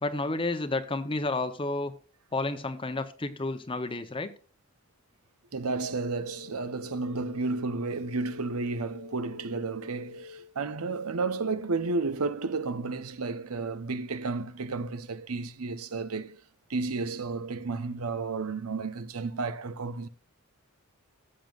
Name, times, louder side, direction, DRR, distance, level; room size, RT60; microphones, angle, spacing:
voice 1, 0.0-1.9 2.3-4.3, left 2 dB, 25° left, 0.7 m, -31 dB
voice 2, 5.5-16.4 16.7-20.1, right 3 dB, 85° right, 0.8 m, -32 dB
sound 1, 5.6-10.5, left 6 dB, 65° left, 0.6 m, -47 dB
15.5 x 7.6 x 2.4 m
head